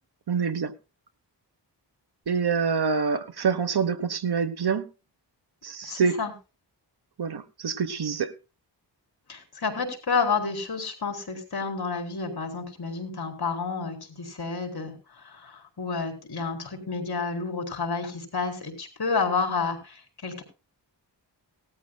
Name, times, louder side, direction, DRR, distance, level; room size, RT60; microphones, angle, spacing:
voice 1, 0.3-0.7 2.3-4.9 5.6-6.2 7.2-8.3, right 5 dB, 60° right, 1.2 m, -26 dB
voice 2, 5.8-6.3 9.3-20.4, left 4 dB, 60° left, 4.2 m, -30 dB
18.5 x 13.5 x 2.3 m
wide cardioid pair, 105°, 43 cm